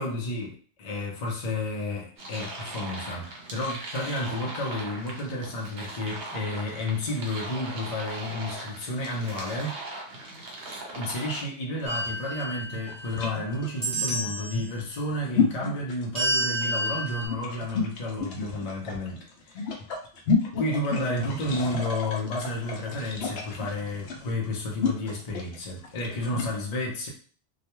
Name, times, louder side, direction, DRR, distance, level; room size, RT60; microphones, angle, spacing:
voice 1, 0.0-9.8 10.9-19.8 20.6-27.1, left 1 dB, 45° left, -1 dB, 0.6 m, -31 dB
sound 1, 2.2-11.4, right 2 dB, 75° right, 1.1 m, -39 dB
sound 2, 11.8-26.6, left 5 dB, 75° left, 0.9 m, -31 dB
sound 3, 11.9-13.3 13.8-14.7 16.2-17.3, right 1 dB, 20° right, 0.8 m, -30 dB
2.3 x 2.2 x 2.9 m, 0.44 s
omnidirectional pair, 1.1 m